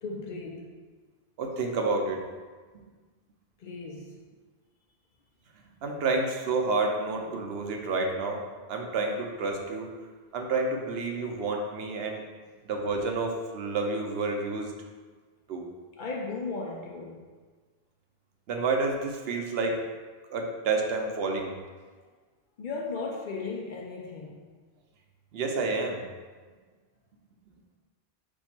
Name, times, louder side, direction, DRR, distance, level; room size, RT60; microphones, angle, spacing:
voice 1, 0.0-0.7 3.6-4.2 16.0-17.2 22.6-24.5, left 3 dB, 60° left, 0 dB, 0.6 m, -36 dB
voice 2, 1.4-2.2 5.8-8.4 8.7-9.9 10.3-12.2 12.6-14.7 15.5-15.6 18.5-19.8 20.3-21.5 25.3-26.0, right 3 dB, 75° right, 2 dB, 0.8 m, -29 dB
4.4 x 2.3 x 4.3 m, 1.4 s
omnidirectional pair, 1.0 m